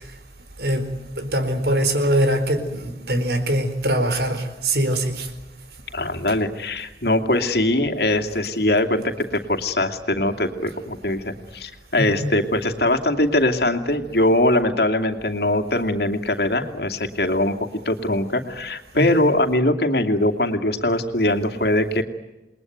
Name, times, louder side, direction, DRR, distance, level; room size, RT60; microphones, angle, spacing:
voice 1, 1.2-5.3 12.0-12.4 19.0-19.3, right 1 dB, 65° right, 8 dB, 4.4 m, -22 dB
voice 2, 5.9-17.6 17.8-22.0, left 1 dB, 65° left, 5 dB, 2.6 m, -21 dB
29.0 x 21.5 x 9.4 m, 1.0 s
head